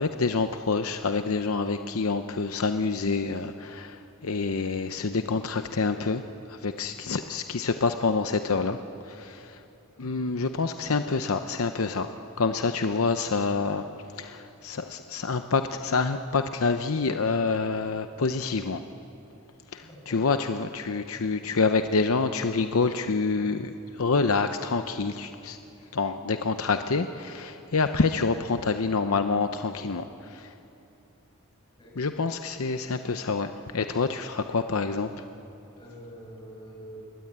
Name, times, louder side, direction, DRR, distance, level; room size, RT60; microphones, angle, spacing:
voice 1, 0.0-6.2 6.5-8.8 9.0-9.6 10.0-13.8 14.2-18.8 19.7-25.6 25.9-30.5 32.0-35.1, left 4 dB, 75° left, 8 dB, 0.8 m, -27 dB
voice 2, 19.8-20.3 31.8-32.0 35.8-37.0, equal, 25° left, -2 dB, 7.7 m, -45 dB
23.5 x 20.0 x 8.8 m, 2.9 s
head